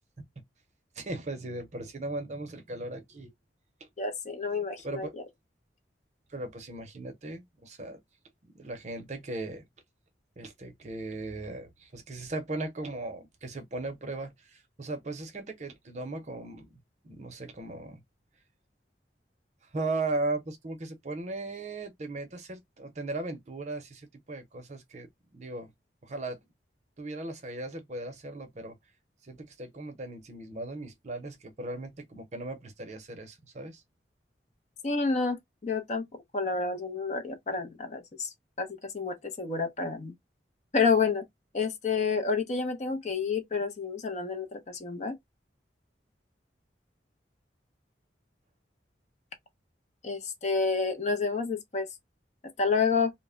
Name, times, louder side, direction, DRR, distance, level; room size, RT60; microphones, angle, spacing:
voice 1, 1.0-3.3 4.8-5.1 6.3-8.0 8.5-9.7 10.4-18.0 19.7-25.7 26.0-26.4 27.0-28.8 29.2-33.8, right 2 dB, 40° right, 0.6 m, -37 dB
voice 2, 4.0-5.1 34.8-36.0 36.3-38.3 38.6-40.1 40.7-41.2 41.5-45.1 50.0-51.9 52.6-53.1, left 4 dB, 40° left, 0.5 m, -29 dB
2.1 x 2.0 x 3.5 m
head